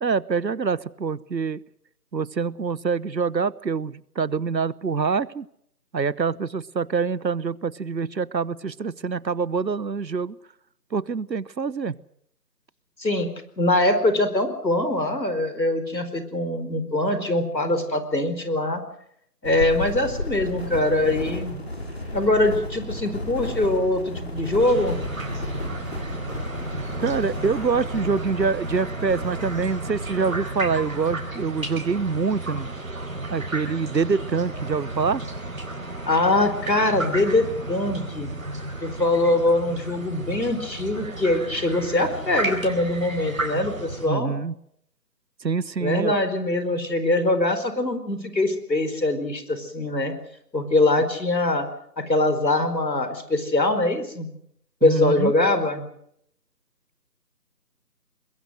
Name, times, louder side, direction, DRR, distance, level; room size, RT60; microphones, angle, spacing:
voice 1, 0.0-1.6 2.1-5.4 5.9-10.4 10.9-12.0 21.6-21.7 27.0-32.7 33.3-35.2 44.1-44.5 45.4-46.2 54.8-55.3, right 5 dB, 80° right, 22 dB, 1.1 m, -25 dB
voice 2, 13.0-13.3 13.6-18.8 19.4-21.5 22.1-25.0 36.0-38.3 38.8-44.3 45.8-50.1 50.5-51.7 52.0-54.3 54.8-55.9, left 2 dB, 85° left, 10 dB, 4.9 m, -23 dB
sound 1, 19.4-30.2, left 1 dB, 40° left, 5.2 m, -33 dB
sound 2, 24.6-44.1, right 2 dB, 55° right, 4.2 m, -33 dB
23.5 x 21.5 x 6.4 m, 0.70 s
figure-of-eight pair, 175°, 50 cm